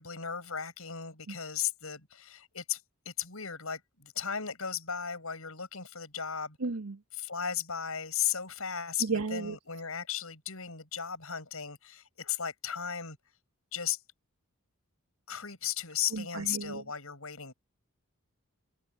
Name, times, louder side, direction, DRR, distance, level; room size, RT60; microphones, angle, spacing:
voice 1, 0.0-2.8 3.1-6.6 7.2-13.2 13.7-14.0 15.3-17.5, left 8 dB, 70° left, 7.3 m, -36 dB
voice 2, 6.6-7.0 9.0-9.6 16.1-16.8, right 4 dB, 90° right, 1.2 m, -33 dB
head